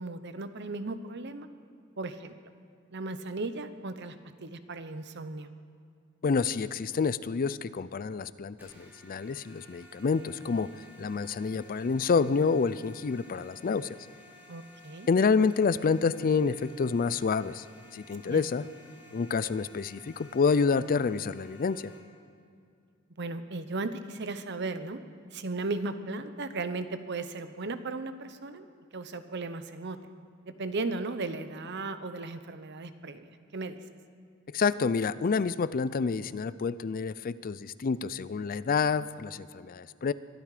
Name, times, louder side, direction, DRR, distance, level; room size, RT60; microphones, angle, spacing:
voice 1, 0.0-1.5 2.0-2.3 2.9-5.5 14.5-15.1 18.3-18.7 23.2-25.0 25.3-28.7 28.9-30.0 30.5-33.8, right 3 dB, 60° right, 10 dB, 0.9 m, -36 dB
voice 2, 6.2-10.7 11.0-14.0 15.1-17.7 17.9-18.6 19.1-21.9 34.5-40.1, left 5 dB, 45° left, 16 dB, 0.4 m, -28 dB
sound 1, 8.6-22.0, left 2 dB, 10° right, 5.0 m, -55 dB
23.0 x 12.5 x 5.0 m, 2.4 s
head